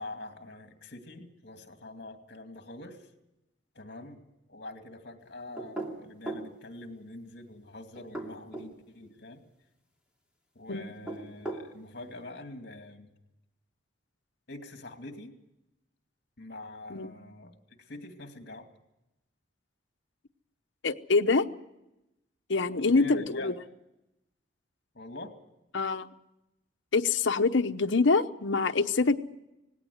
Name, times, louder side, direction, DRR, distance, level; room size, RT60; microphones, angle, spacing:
voice 1, 0.0-3.1 3.7-4.2 4.5-9.4 10.5-13.1 14.5-15.3 16.4-18.7 22.6-23.5 24.9-25.3, left 2 dB, 55° left, 5 dB, 2.5 m, -44 dB
sound 1, 5.6-6.5 8.0-8.7 10.9-11.7, right 2 dB, 5° right, 2.7 m, -37 dB
voice 2, 20.8-21.4 22.5-23.5 25.7-26.1 26.9-29.2, left 3 dB, 75° left, 7 dB, 0.9 m, -25 dB
19.0 x 17.0 x 9.5 m, 0.94 s
head